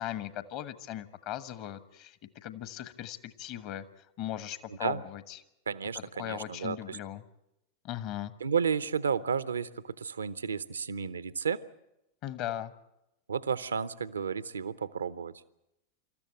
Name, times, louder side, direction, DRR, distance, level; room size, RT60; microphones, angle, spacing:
voice 1, 0.0-3.8 4.2-5.4 6.2-7.2 7.8-8.3 12.2-12.7, left 12 dB, 45° left, 14 dB, 1.2 m, -38 dB
voice 2, 4.7-5.0 5.7-7.0 8.4-11.6 13.3-15.3, right 6 dB, 70° right, 17 dB, 0.7 m, -32 dB
26.0 x 14.0 x 8.9 m, 0.88 s
figure-of-eight pair, 90°, 0 cm